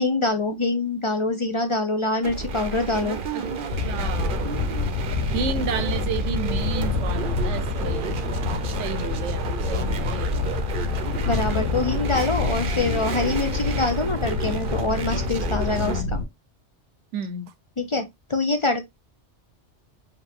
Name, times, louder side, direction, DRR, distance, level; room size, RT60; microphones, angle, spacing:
voice 1, 0.0-3.2 11.3-16.0 17.8-18.8, left 2 dB, 40° left, 0.5 m, -25 dB
sound 1, 2.2-16.0, right 5 dB, 55° right, 0.7 m, -31 dB
voice 2, 3.3-4.7 5.3-8.2 8.8-10.4 11.2-11.5 15.8-16.1 17.1-17.5, right 6 dB, 80° right, 1.0 m, -32 dB
sound 2, 3.7-16.2, left 5 dB, 80° left, 1.0 m, -27 dB
sound 3, 11.1-16.3, left 2 dB, 10° left, 1.0 m, -41 dB
4.9 x 2.7 x 3.5 m
omnidirectional pair, 1.2 m